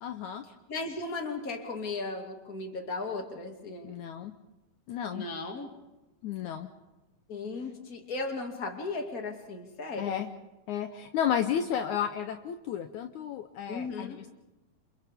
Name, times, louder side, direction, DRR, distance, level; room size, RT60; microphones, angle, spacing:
voice 1, 0.0-0.4 3.8-4.3 4.9-5.3 6.2-6.7 10.0-10.3 10.7-14.3, left 9 dB, 85° left, 7 dB, 1.7 m, -32 dB
voice 2, 0.7-3.9 5.1-5.7 7.3-10.2 13.7-14.2, left 3 dB, 30° left, 3 dB, 2.1 m, -36 dB
29.0 x 27.5 x 3.6 m, 1.0 s
omnidirectional pair, 4.5 m